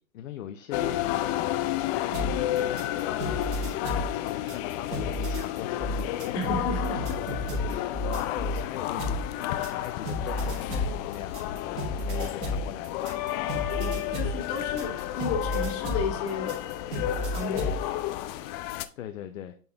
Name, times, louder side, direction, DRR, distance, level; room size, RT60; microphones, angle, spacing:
voice 1, 0.1-1.5 2.2-6.3 7.7-13.3 13.7-13.8 19.0-19.5, left 11 dB, 75° left, 0.7 m, -40 dB
sound 1, 0.7-18.9, left 13 dB, 35° left, 0.5 m, -31 dB
sound 2, 2.1-8.6 9.0-17.8, equal, 40° right, 2.6 m, -32 dB
voice 2, 6.3-7.2 13.7-16.6 17.2-17.7, left 3 dB, 55° left, 2.2 m, -33 dB
9.0 x 3.8 x 2.9 m
hypercardioid pair, 110°, 40 cm